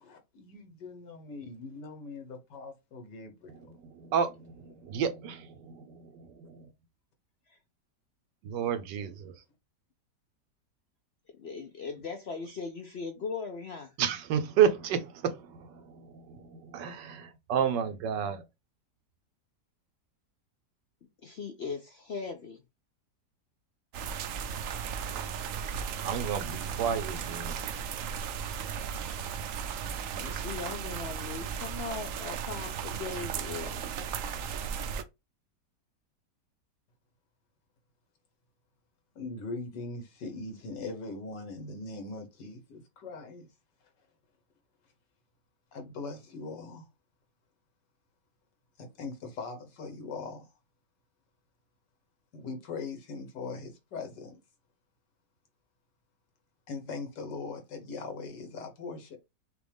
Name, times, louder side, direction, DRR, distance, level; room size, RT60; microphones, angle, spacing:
voice 1, 0.1-3.5 39.2-43.5 45.7-46.9 48.8-50.5 52.3-54.4 56.7-59.2, left 3 dB, 85° left, 1.9 m, -41 dB
voice 2, 3.5-6.7 8.4-9.3 14.0-18.4 26.0-27.6, right 8 dB, 85° right, 1.4 m, -31 dB
voice 3, 11.4-13.9 21.2-22.6 30.2-33.9, left 4 dB, 60° left, 0.6 m, -39 dB
sound 1, 23.9-35.0, right 7 dB, 65° right, 0.8 m, -36 dB
6.1 x 2.5 x 3.5 m
omnidirectional pair, 1.8 m